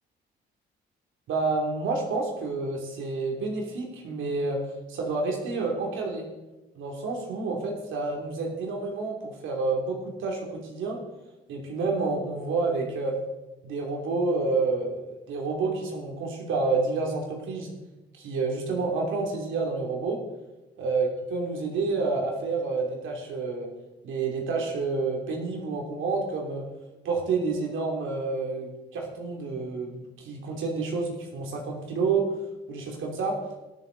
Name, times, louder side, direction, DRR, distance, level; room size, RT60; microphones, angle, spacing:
voice 1, 1.3-4.6 4.9-6.3 6.7-11.0 11.5-13.2 13.6-17.7 18.2-20.2 20.8-23.7 24.0-26.6 27.0-32.3 32.7-33.4, right 3 dB, 80° right, 0 dB, 3.0 m, -29 dB
21.0 x 7.3 x 4.1 m, 1.1 s
cardioid pair, 90°, 20 cm